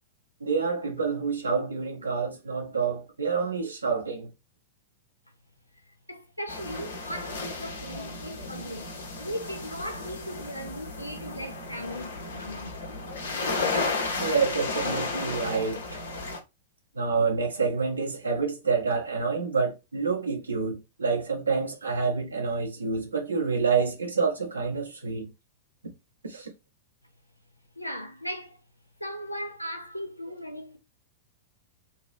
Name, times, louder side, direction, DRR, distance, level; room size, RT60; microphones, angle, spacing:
voice 1, 0.4-4.3 14.2-16.0 16.9-25.3 26.2-26.5, right 5 dB, 75° right, 1.4 m, -28 dB
voice 2, 5.8-8.9 9.2-12.7 27.8-28.6 29.0-30.8, equal, 90° left, 0.7 m, -38 dB
sound 1, 6.5-16.4, left 3 dB, 65° left, 1.1 m, -33 dB
3.5 x 2.9 x 3.2 m
figure-of-eight pair, 100°, 0 cm